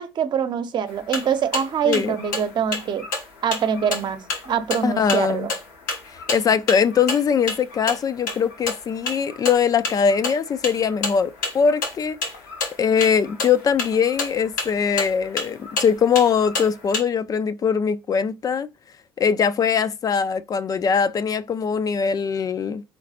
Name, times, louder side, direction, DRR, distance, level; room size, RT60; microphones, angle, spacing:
voice 1, 0.0-3.0 3.4-4.2 4.5-5.5, right 7 dB, 50° right, 0.8 m, -24 dB
sound 1, 0.9-17.0, left 3 dB, 90° left, 1.2 m, -31 dB
voice 2, 1.8-2.2 4.8-5.5 6.3-12.2 12.8-18.7 19.2-22.8, left 6 dB, 40° left, 0.4 m, -21 dB
4.0 x 3.2 x 4.0 m
hypercardioid pair, 65°, 10 cm